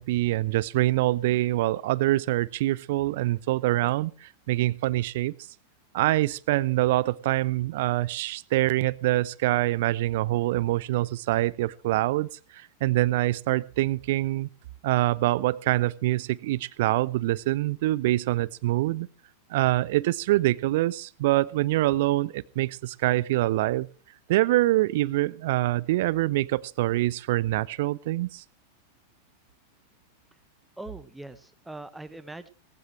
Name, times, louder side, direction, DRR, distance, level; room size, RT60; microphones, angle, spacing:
voice 1, 0.0-5.3 5.9-14.5 14.8-19.1 19.5-23.9 24.3-28.4, right 17 dB, 50° right, 22 dB, 0.6 m, -25 dB
voice 2, 30.8-32.5, right 2 dB, 5° right, 11 dB, 1.4 m, -41 dB
18.0 x 15.5 x 3.2 m, 0.36 s
figure-of-eight pair, 90°, 0 cm